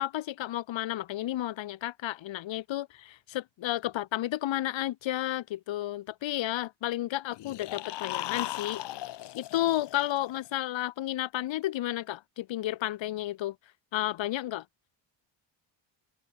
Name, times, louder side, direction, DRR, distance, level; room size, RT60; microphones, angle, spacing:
voice 1, 0.0-8.8 9.3-13.5 13.9-14.6, left 14 dB, 85° left, 4.6 m, -32 dB
sound 1, 7.3-10.5, left 14 dB, 70° left, 1.4 m, -37 dB
open air
cardioid pair, 160°, 44 cm